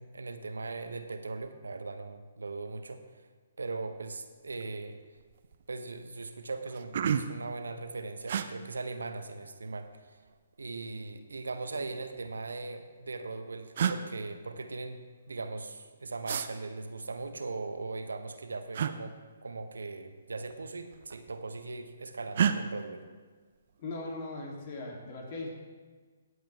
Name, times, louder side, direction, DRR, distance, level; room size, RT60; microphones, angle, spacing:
voice 1, 0.0-3.0 3.6-5.0 5.7-10.2 10.6-15.0 15.3-19.1 19.4-23.0, right 3 dB, 75° right, 8 dB, 1.0 m, -39 dB
sound 1, 4.5-4.8 5.2-5.6 6.2-6.3 6.6-7.5 8.3-8.5 9.7-10.4 11.5-12.4 13.3-13.4 13.7-14.0 16.2-16.5 18.7-18.9 20.3-20.5 20.8-21.4 22.3-22.6, right 8 dB, 55° right, 0.6 m, -31 dB
voice 2, 23.8-25.5, left 2 dB, 45° left, -1 dB, 2.8 m, -39 dB
17.5 x 7.8 x 3.4 m, 1.5 s
figure-of-eight pair, 135°, 0 cm